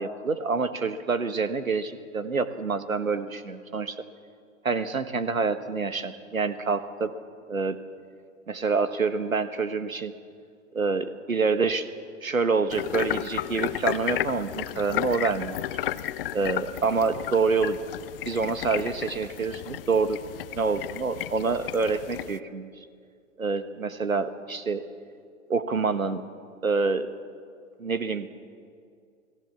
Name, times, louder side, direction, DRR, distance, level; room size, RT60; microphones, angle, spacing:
voice 1, 0.0-4.0 4.6-7.1 7.5-7.8 8.5-10.1 10.7-11.9 12.2-15.6 16.3-17.8 18.2-20.2 20.5-22.8 23.4-24.8 25.5-26.2 26.6-27.1 27.8-28.3, right 4 dB, 80° right, 12 dB, 1.6 m, -27 dB
sound 1, 12.7-22.4, left 13 dB, 45° left, 0.7 m, -33 dB
28.5 x 18.5 x 7.1 m, 2.2 s
figure-of-eight pair, 110°, 41 cm